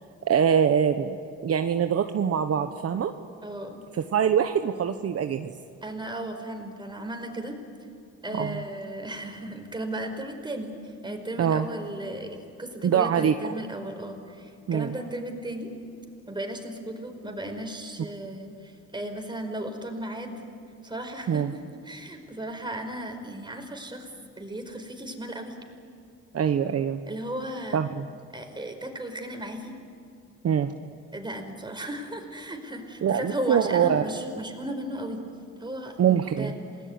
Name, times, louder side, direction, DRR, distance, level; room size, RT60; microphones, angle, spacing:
voice 1, 0.3-1.2 1.4-3.1 4.0-5.5 8.4-8.5 11.4-11.7 12.8-13.5 14.7-14.9 21.3-21.5 26.3-27.0 27.7-28.1 30.4-30.7 33.0-34.0 36.0-36.5, right 8 dB, 50° right, 7 dB, 1.2 m, -23 dB
voice 2, 3.4-3.8 5.8-7.6 8.2-15.7 16.3-20.3 20.8-24.1 24.4-25.6 27.1-27.8 28.3-29.8 31.1-35.2 35.6-36.5, right 1 dB, 15° right, 4 dB, 5.1 m, -35 dB
28.0 x 19.5 x 9.7 m, 2.6 s
cardioid pair, 90°, 30 cm